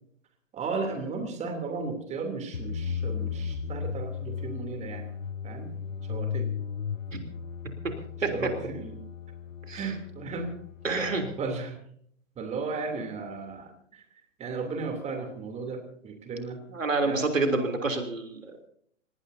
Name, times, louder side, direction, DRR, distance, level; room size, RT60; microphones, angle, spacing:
voice 1, 0.5-5.0 5.4-5.7 6.1-6.5 8.3-8.9 9.7-10.5 10.9-11.8 12.4-14.0 14.4-16.6 17.0-17.2, right 4 dB, 15° right, 5 dB, 3.2 m, -35 dB
sound 1, 2.5-11.4, left 6 dB, 85° left, 0.9 m, -35 dB
voice 2, 10.8-11.3 16.7-18.7, right 3 dB, 80° right, 5 dB, 3.4 m, -28 dB
26.5 x 19.0 x 2.8 m, 0.63 s
figure-of-eight pair, 115°, 39 cm